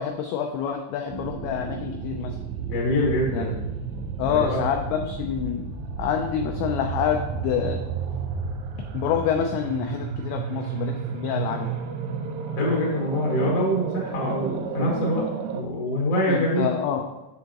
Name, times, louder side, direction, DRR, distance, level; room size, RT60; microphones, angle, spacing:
voice 1, 0.0-2.3 3.3-3.5 4.2-5.7 6.0-7.8 8.9-11.7 16.3-17.1, left 8 dB, 85° left, 4 dB, 2.5 m, -27 dB
sound 1, 1.1-15.6, right 6 dB, 85° right, 3.1 m, -32 dB
voice 2, 2.7-3.6 4.3-4.6 12.6-15.2 15.5-16.7, equal, 50° left, -4 dB, 2.2 m, -24 dB
8.0 x 6.7 x 2.9 m, 1.1 s
omnidirectional pair, 5.6 m